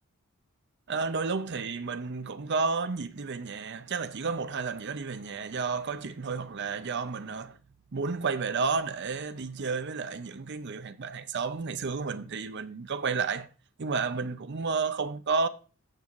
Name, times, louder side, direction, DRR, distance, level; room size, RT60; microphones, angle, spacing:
voice 1, 0.9-7.6 7.9-13.5 13.8-15.5, right 4 dB, 50° right, 0.6 m, -31 dB
14.0 x 6.2 x 2.5 m
head